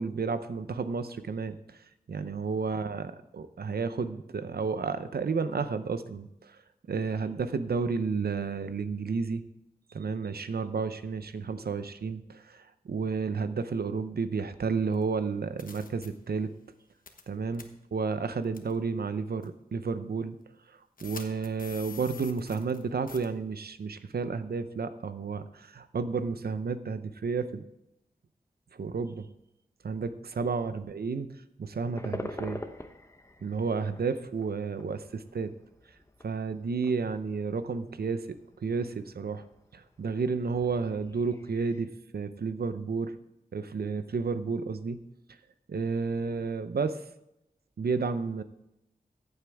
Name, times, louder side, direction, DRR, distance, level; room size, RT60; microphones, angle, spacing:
voice 1, 0.0-6.6 6.9-9.4 9.9-16.5 17.3-17.6 17.9-20.4 20.7-27.6 28.7-29.3 29.8-31.3 31.6-32.6 33.4-35.5 36.2-39.4 39.7-43.1 43.5-45.0 45.7-47.0 47.8-48.4, right 5 dB, 80° right, 11 dB, 0.7 m, -31 dB
sound 1, 14.9-15.0 15.6-16.1 17.1-17.3 17.5-17.6 18.5-18.7 19.4-19.5 21.0-22.8 23.1-23.2, left 5 dB, 60° left, 1.2 m, -45 dB
sound 2, 31.9-41.8, left 1 dB, 20° left, 0.9 m, -46 dB
14.5 x 8.1 x 3.5 m, 0.85 s
wide cardioid pair, 70°, 16 cm